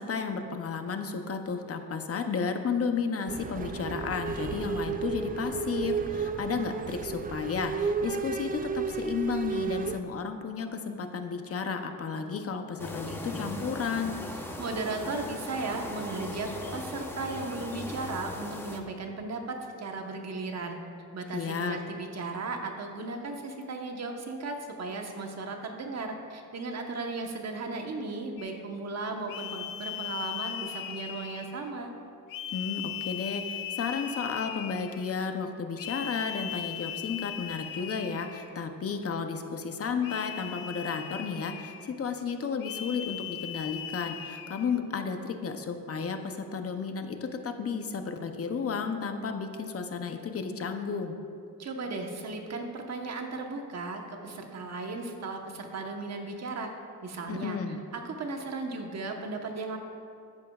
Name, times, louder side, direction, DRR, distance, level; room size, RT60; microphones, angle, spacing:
voice 1, 0.0-14.2 21.3-21.8 32.5-51.2 57.3-57.8, left 5 dB, 45° left, 6 dB, 0.7 m, -33 dB
sound 1, 3.3-10.0, right 5 dB, 25° right, 0.4 m, -33 dB
sound 2, 12.8-18.8, left 1 dB, 5° left, 0.8 m, -39 dB
voice 2, 14.6-20.8 21.1-31.9 51.6-56.7 57.0-57.6 57.9-59.8, right 3 dB, 50° right, 3 dB, 1.2 m, -36 dB
sound 3, 28.4-28.6 29.3-31.7 32.3-35.0 35.8-38.6 40.0-41.9 42.6-44.7, left 10 dB, 80° left, 0.7 m, -38 dB
14.0 x 10.5 x 2.4 m, 2.5 s
cardioid pair, 125°, 34 cm